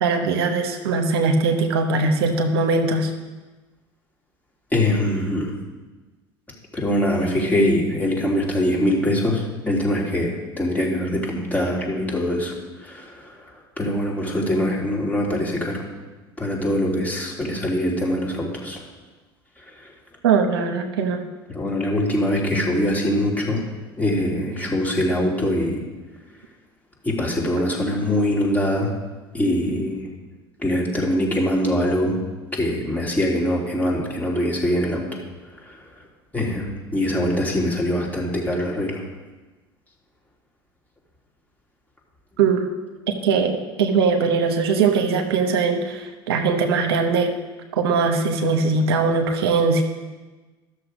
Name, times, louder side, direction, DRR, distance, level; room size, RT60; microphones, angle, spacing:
voice 1, 0.0-3.1 20.2-21.2 42.4-42.7 43.2-47.3 47.8-49.8, right 4 dB, 80° right, 4 dB, 1.0 m, -20 dB
voice 2, 4.7-5.5 6.7-12.5 12.8-15.8 16.4-18.8 19.8-19.9 21.5-23.6 24.0-25.8 27.0-28.9 29.3-30.1 30.6-32.1 32.5-35.2 35.7-35.8 36.3-39.0, left 1 dB, 10° left, -3 dB, 3.1 m, -23 dB
12.5 x 6.6 x 5.1 m, 1.2 s
hypercardioid pair, 70°, 13 cm